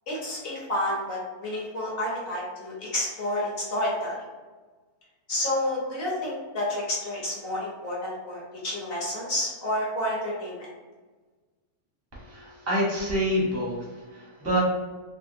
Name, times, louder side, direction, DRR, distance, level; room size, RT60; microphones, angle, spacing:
voice 1, 0.1-4.1 5.3-10.7, left 1 dB, 50° left, -5 dB, 0.9 m, -30 dB
voice 2, 12.1-14.6, equal, 15° right, -5 dB, 0.5 m, -27 dB
3.5 x 2.1 x 2.6 m, 1.3 s
omnidirectional pair, 1.5 m